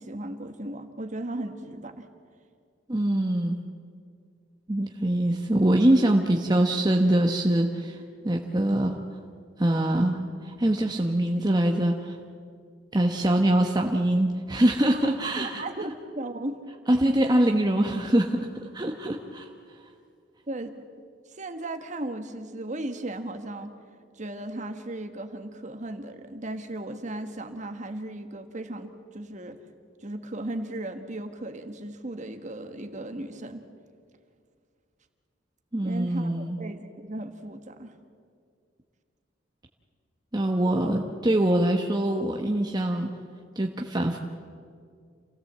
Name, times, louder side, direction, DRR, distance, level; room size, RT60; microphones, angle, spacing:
voice 1, 0.0-2.1 14.9-15.1 15.6-16.6 20.5-20.8 21.3-23.7 24.2-29.6 30.0-33.6 35.8-37.9, right 1 dB, 40° right, 7 dB, 1.5 m, -36 dB
voice 2, 2.9-3.7 4.7-8.0 8.2-9.0 9.6-12.2 12.9-15.9 16.9-18.5 18.7-19.5 35.7-36.6 40.3-43.1 43.6-44.2, right 1 dB, 20° right, 2 dB, 1.0 m, -24 dB
27.5 x 16.5 x 7.6 m, 2.2 s
head